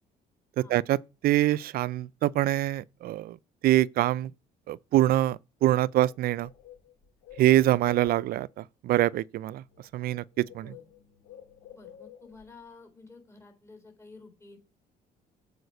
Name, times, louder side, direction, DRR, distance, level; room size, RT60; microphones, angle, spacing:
voice 1, 0.6-3.4 3.6-4.3 4.7-6.5 7.4-9.6 9.9-10.7, right 14 dB, 60° right, 0.4 m, -25 dB
Bird, 6.0-8.5 9.6-9.8 10.1-12.5, left 10 dB, 85° left, 2.5 m, -50 dB
voice 2, 10.3-10.8 11.7-14.6, left 3 dB, 15° left, 3.8 m, -52 dB
7.9 x 4.9 x 6.8 m
cardioid pair, 110°, 17 cm